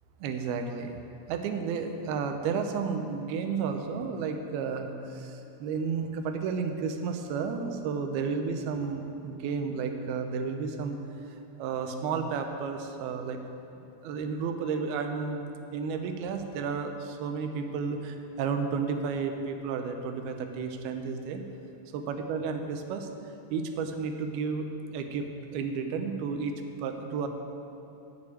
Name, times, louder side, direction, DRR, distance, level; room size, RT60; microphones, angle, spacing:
voice 1, 0.2-0.9 1.3-11.0 11.6-13.4 14.0-21.4 21.9-23.1 23.5-27.3, right 5 dB, 85° right, 6 dB, 2.7 m, -32 dB
9.6 x 6.5 x 8.5 m, 2.9 s
omnidirectional pair, 4.4 m